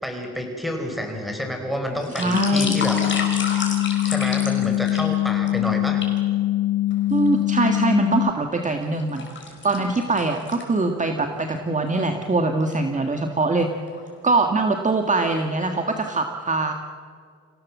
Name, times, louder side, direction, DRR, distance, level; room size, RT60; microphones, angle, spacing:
voice 1, 0.0-3.3 4.1-6.0, equal, ahead, 4 dB, 5.2 m, -29 dB
sound 1, 1.9-5.5 6.0-6.2 6.9-7.7 8.2-11.0 11.4-11.5 11.9-12.1 12.5-12.7 13.6-14.1 14.6-14.8 15.1-15.7 16.1-16.2, left 4 dB, 40° left, 5.5 m, -32 dB
voice 2, 2.2-2.8 7.1-13.7 14.2-16.7, right 3 dB, 25° right, 5 dB, 1.8 m, -23 dB
sound 2, 2.3-8.3, left 14 dB, 70° left, 0.5 m, -23 dB
27.0 x 17.0 x 7.4 m, 2.1 s
cardioid pair, 90°, 30 cm